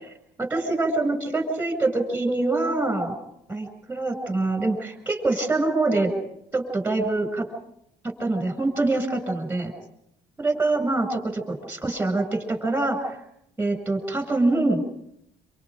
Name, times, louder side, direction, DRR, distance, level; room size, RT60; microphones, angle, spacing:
voice 1, 0.4-3.1 3.5-6.1 6.5-7.5 8.2-9.7 10.4-13.2 13.6-14.8, right 2 dB, 10° right, 7 dB, 7.5 m, -25 dB
27.0 x 27.0 x 5.2 m, 0.75 s
cardioid pair, 110°, 17 cm